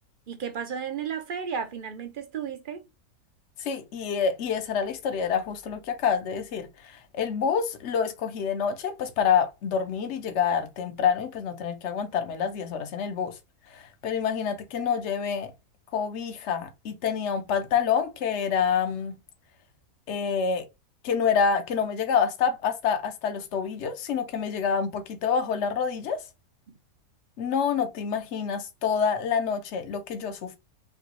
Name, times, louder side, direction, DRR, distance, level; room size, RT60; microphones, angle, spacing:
voice 1, 0.3-2.9, right 7 dB, 45° right, 0.7 m, -33 dB
voice 2, 3.6-6.7 7.1-13.4 13.7-15.5 15.9-19.1 20.1-20.7 21.0-26.2 27.4-30.6, left 7 dB, 55° left, 1.0 m, -27 dB
5.9 x 2.3 x 2.9 m
omnidirectional pair, 1.6 m